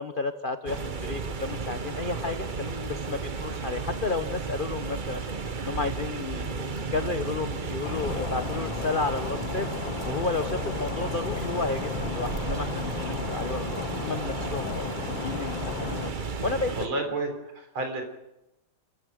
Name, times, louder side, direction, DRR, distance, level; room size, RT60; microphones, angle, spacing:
voice 1, 0.0-5.2 5.6-9.7 10.0-15.9 16.4-16.9, left 4 dB, 85° left, 9 dB, 0.4 m, -32 dB
sound 1, 0.7-16.9, right 4 dB, 50° right, 0.5 m, -33 dB
Stream, 7.8-16.1, left 9 dB, 65° left, 1.6 m, -35 dB
voice 2, 16.7-18.0, right 2 dB, 70° right, 4 dB, 4.6 m, -31 dB
29.0 x 14.5 x 6.4 m, 0.93 s
omnidirectional pair, 2.4 m